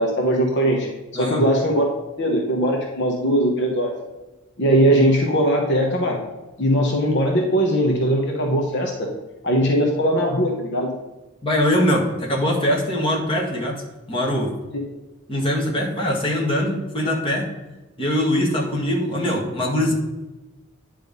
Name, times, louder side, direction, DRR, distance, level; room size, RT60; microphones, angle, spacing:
voice 1, 0.0-1.9 2.2-3.9 4.6-6.2 6.6-9.1 9.4-10.9 14.7-14.8, equal, 60° left, 0 dB, 1.1 m, -20 dB
voice 2, 11.4-13.8 14.1-14.5 15.3-17.4 18.0-19.9, left 1 dB, 25° left, -2 dB, 1.7 m, -22 dB
9.7 x 3.4 x 5.3 m, 1.1 s
head